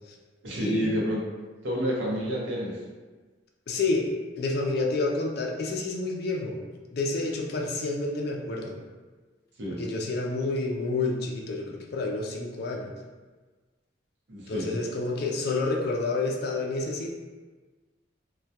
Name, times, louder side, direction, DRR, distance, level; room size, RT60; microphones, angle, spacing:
voice 1, 0.4-1.2 1.6-2.8 9.6-9.9 14.3-14.8, equal, 70° right, -4 dB, 0.6 m, -29 dB
voice 2, 3.7-4.1 4.4-6.6 6.9-8.8 9.7-12.9 14.5-17.1, left 3 dB, 55° left, 0 dB, 0.3 m, -29 dB
2.2 x 2.1 x 2.7 m, 1.3 s
head